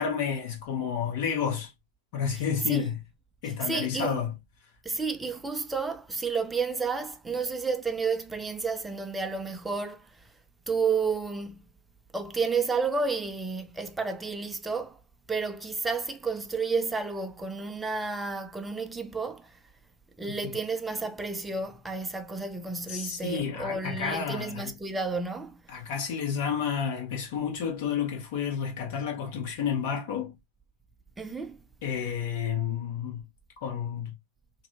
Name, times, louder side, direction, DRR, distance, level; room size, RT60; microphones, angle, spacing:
voice 1, 0.0-1.7 2.1-3.0 3.4-4.3 22.9-24.7 25.7-30.3 31.8-33.2 33.6-34.1, left 7 dB, 50° left, 0.9 m, -30 dB
voice 2, 3.6-4.2 4.8-10.1 10.7-11.6 12.1-15.0 15.3-19.5 20.2-25.6 31.2-31.6, right 4 dB, 10° right, 0.4 m, -31 dB
2.6 x 2.1 x 2.6 m
figure-of-eight pair, 90°, 0 cm